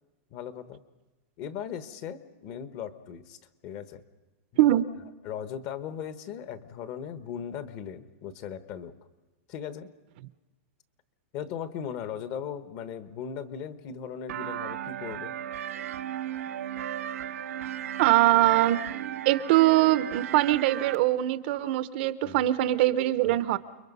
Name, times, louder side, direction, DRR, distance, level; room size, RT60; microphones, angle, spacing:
voice 1, 0.3-0.8 1.4-4.0 4.5-4.6 5.2-8.9 9.5-9.9 11.3-15.3 16.4-16.6 22.2-22.4, left 8 dB, 35° left, 12 dB, 1.2 m, -38 dB
sound 1, 14.3-21.0, right 11 dB, 75° right, 0.8 m, -35 dB
voice 2, 18.0-18.8 19.3-23.6, right 15 dB, 45° right, 14 dB, 0.7 m, -22 dB
29.5 x 22.0 x 5.5 m, 1.2 s
supercardioid pair, 165°, 8 cm